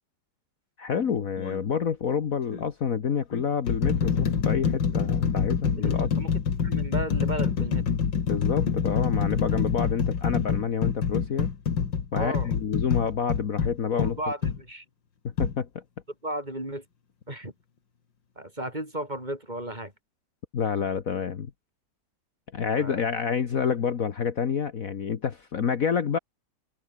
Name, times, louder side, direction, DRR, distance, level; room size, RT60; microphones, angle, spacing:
voice 1, 0.8-6.1 8.3-11.5 12.1-14.2 15.2-15.8 20.5-21.5 22.5-26.2, left 7 dB, 50° left, 1.6 m, -28 dB
sound 1, 1.4-1.6 2.5-2.7 3.3-14.6 15.4-15.6, left 6 dB, 90° left, 2.8 m, -26 dB
voice 2, 5.8-6.3 6.6-7.9 12.1-12.5 14.0-14.8 16.2-16.8 17.3-17.5 18.4-19.9 22.7-23.0, right 1 dB, 25° right, 5.9 m, -34 dB
omnidirectional pair, 1.9 m